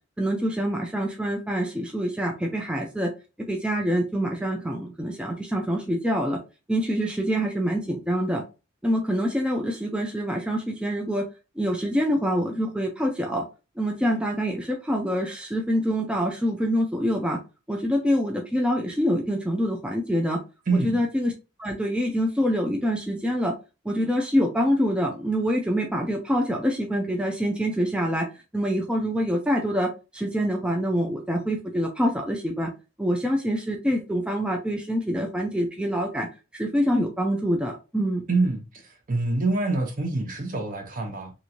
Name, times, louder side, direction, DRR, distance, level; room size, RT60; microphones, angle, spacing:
voice 1, 0.2-3.1 3.5-6.4 6.7-8.4 8.8-11.3 11.6-13.4 13.8-17.4 17.7-20.4 20.8-21.3 21.6-23.5 23.9-28.3 28.5-32.7 33.0-36.3 36.5-38.2, equal, 5° right, 0.3 m, -25 dB
voice 2, 20.7-21.0 38.3-41.3, right 3 dB, 45° right, 0.7 m, -26 dB
3.0 x 2.5 x 2.7 m
head